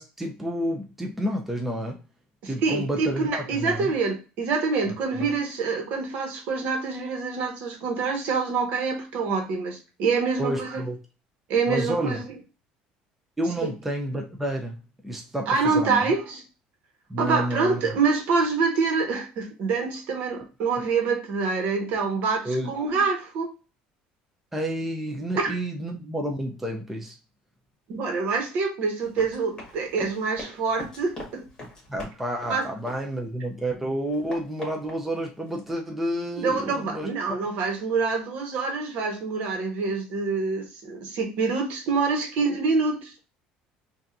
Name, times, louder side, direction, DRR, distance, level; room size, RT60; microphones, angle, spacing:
voice 1, 0.0-2.0 2.5-3.9 4.8-5.3 10.4-11.0 11.7-12.2 13.4-16.1 17.1-17.8 22.4-22.7 24.5-27.2 31.9-37.4, right 1 dB, 5° right, 0.6 m, -30 dB
voice 2, 2.4-10.8 11.5-12.2 13.6-13.7 15.5-16.4 17.2-23.5 25.4-25.5 27.9-31.4 32.5-32.7 36.4-43.1, right 4 dB, 60° right, 1.3 m, -26 dB
Run, 29.0-33.5 33.8-35.7, left 1 dB, 20° left, 1.9 m, -43 dB
5.5 x 2.7 x 2.6 m
cardioid pair, 135°, 3 cm